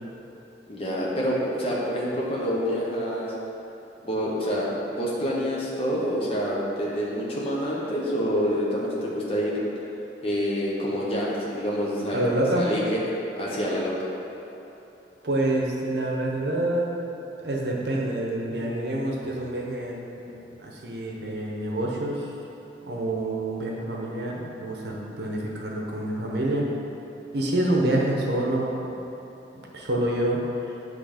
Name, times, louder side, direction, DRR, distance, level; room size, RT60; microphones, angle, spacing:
voice 1, 0.7-3.3 4.0-9.5 10.2-12.2 12.5-13.0 13.4-13.9, equal, 35° left, -6 dB, 1.1 m, -27 dB
voice 2, 12.1-12.6 15.2-16.9 17.4-22.3 22.8-26.7 27.3-28.8 29.7-30.4, right 1 dB, 65° right, -2 dB, 0.9 m, -27 dB
7.7 x 3.3 x 5.0 m, 3.0 s
head